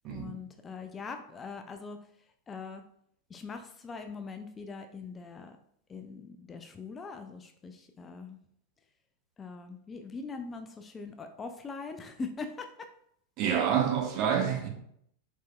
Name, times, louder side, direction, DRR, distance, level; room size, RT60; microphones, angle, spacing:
voice 1, 0.1-2.0 2.5-2.8 3.3-5.6 5.9-8.4 9.4-12.9, left 4 dB, 20° left, 6 dB, 0.4 m, -42 dB
voice 2, 13.4-14.7, right 8 dB, 40° right, 2 dB, 0.9 m, -28 dB
4.6 x 4.1 x 2.2 m, 0.70 s
figure-of-eight pair, 90°, 0 cm